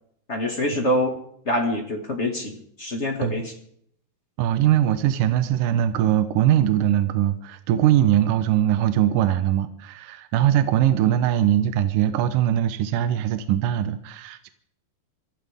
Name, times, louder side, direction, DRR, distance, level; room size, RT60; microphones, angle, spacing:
voice 1, 0.3-1.1 1.4-2.5 2.8-3.5, left 1 dB, 40° left, 2 dB, 0.9 m, -25 dB
voice 2, 4.4-14.5, right 11 dB, 75° right, 10 dB, 2.0 m, -21 dB
25.5 x 15.0 x 3.6 m, 0.68 s
omnidirectional pair, 4.7 m